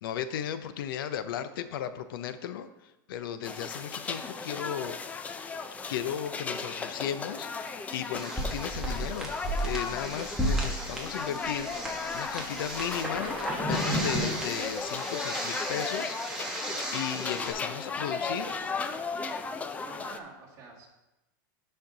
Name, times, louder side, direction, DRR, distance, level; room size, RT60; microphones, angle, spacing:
voice 1, 0.0-2.7 3.1-5.0 5.8-9.4 9.6-16.2 16.9-18.5, left 9 dB, 75° left, 11 dB, 0.6 m, -35 dB
sound 1, 3.4-20.2, left 4 dB, 10° left, 0.4 m, -36 dB
sound 2, 8.1-17.5, right 1 dB, 5° right, 1.2 m, -33 dB
voice 2, 14.9-15.5 17.5-19.1 19.7-20.9, right 3 dB, 30° right, -4 dB, 2.1 m, -51 dB
11.5 x 4.4 x 3.9 m, 0.98 s
supercardioid pair, 150°, 12 cm